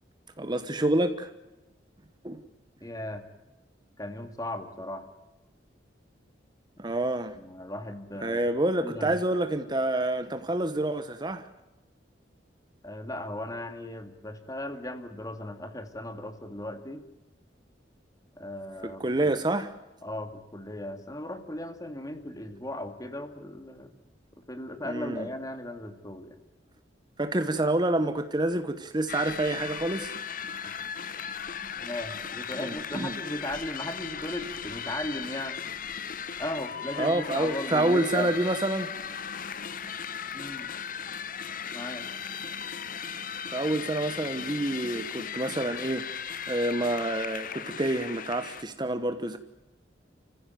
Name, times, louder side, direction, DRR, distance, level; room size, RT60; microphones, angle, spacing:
voice 1, 0.4-1.3 2.2-2.4 6.8-7.4 8.2-11.5 18.8-19.7 24.8-25.3 27.2-30.2 32.6-33.2 37.0-38.9 43.5-49.4, right 1 dB, 25° right, 1.1 m, -28 dB
voice 2, 2.8-3.2 4.0-5.1 7.4-8.5 8.8-9.2 12.8-17.1 18.4-19.3 20.0-23.9 24.5-26.4 30.6-30.7 31.8-35.6 36.4-38.3 40.3-40.7 41.7-42.1, left 1 dB, 20° left, 2.3 m, -37 dB
sound 1, 29.1-48.6, left 7 dB, 50° left, 1.0 m, -37 dB
29.5 x 15.5 x 9.3 m
head